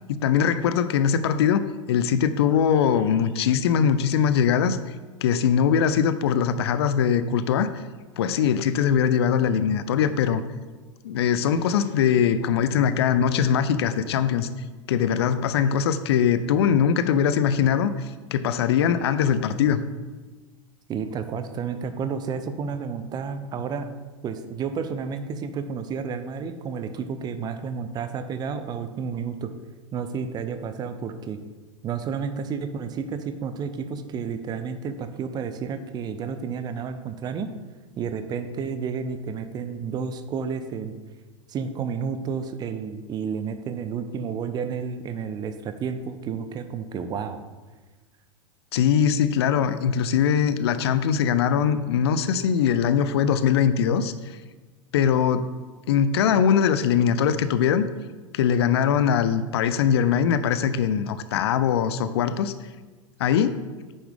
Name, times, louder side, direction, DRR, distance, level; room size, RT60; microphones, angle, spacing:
voice 1, 0.1-4.8 5.2-7.7 8.2-10.4 11.0-14.5 14.9-19.8 48.7-54.4 54.9-55.5 55.9-57.9 58.3-62.5 63.2-63.6, left 8 dB, 55° left, 13 dB, 0.5 m, -21 dB
voice 2, 20.9-23.9 24.2-29.5 29.9-31.4 31.8-37.5 38.0-41.0 41.5-47.4, right 6 dB, 25° right, 10 dB, 0.6 m, -31 dB
9.3 x 7.1 x 3.6 m, 1.3 s
figure-of-eight pair, 90°, 17 cm